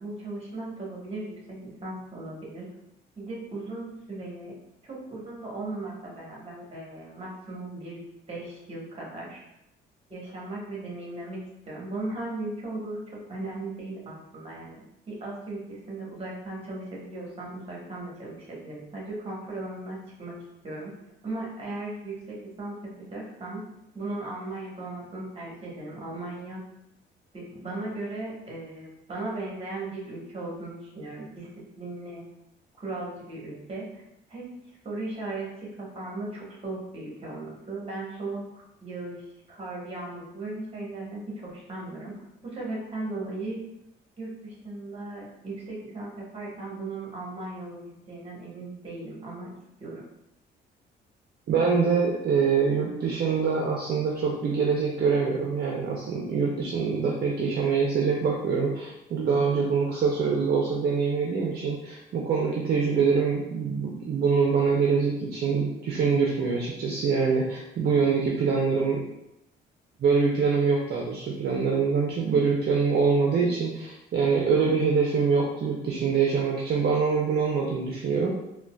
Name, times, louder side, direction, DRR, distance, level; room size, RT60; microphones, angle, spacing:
voice 1, 0.0-2.7 3.2-4.5 4.8-8.0 8.3-9.4 10.1-11.4 11.6-20.4 20.6-20.9 21.2-22.7 23.0-23.6 23.9-26.6 27.3-31.5 31.8-32.3 32.8-33.9 34.3-34.4 34.8-39.2 39.5-42.1 42.4-43.6 44.2-49.5 49.8-50.0, right 2 dB, 30° right, -4 dB, 1.3 m, -37 dB
voice 2, 51.5-69.0 70.0-78.3, right 5 dB, 55° right, -2 dB, 0.5 m, -24 dB
3.8 x 2.2 x 2.3 m, 0.84 s
cardioid pair, 90°, 20 cm